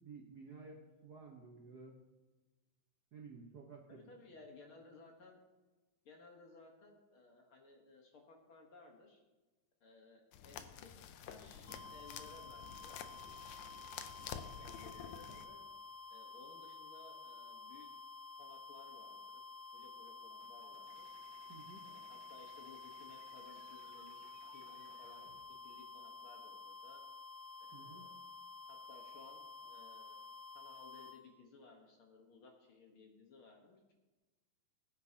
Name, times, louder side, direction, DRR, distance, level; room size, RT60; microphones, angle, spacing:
voice 1, 0.0-2.0 3.1-4.0 21.5-21.9 27.7-28.1, right 4 dB, 70° right, 0 dB, 0.9 m, -53 dB
voice 2, 3.9-5.4 6.1-9.2 9.8-10.9 11.2-13.0 13.7-15.7 16.1-17.9 18.4-19.3 19.7-21.1 21.8-24.3 24.5-27.0 27.7-28.2 28.7-30.2 30.5-33.9, left 3 dB, 55° left, 2 dB, 1.8 m, -60 dB
sound 1, 10.3-15.4, left 9 dB, 75° left, 1.9 m, -50 dB
sound 2, 11.7-31.2, left 4 dB, 35° left, 2.2 m, -52 dB
sound 3, 20.4-25.4, right 4 dB, 90° right, 2.9 m, -66 dB
20.0 x 9.4 x 2.8 m, 1.2 s
omnidirectional pair, 3.5 m